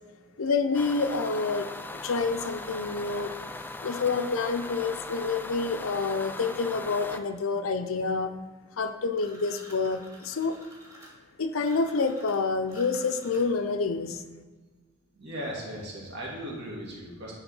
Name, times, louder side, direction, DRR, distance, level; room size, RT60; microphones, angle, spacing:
voice 1, 0.4-3.3 3.8-8.3 8.8-10.6 11.4-14.2, left 4 dB, 90° left, 8 dB, 0.6 m, -28 dB
sound 1, 0.7-7.2, left 2 dB, 10° left, 0.3 m, -39 dB
sound 2, 9.1-13.7, equal, 15° right, 1.9 m, -50 dB
voice 2, 15.1-17.3, equal, 55° right, -4 dB, 2.3 m, -37 dB
10.5 x 3.7 x 5.5 m, 1.4 s
head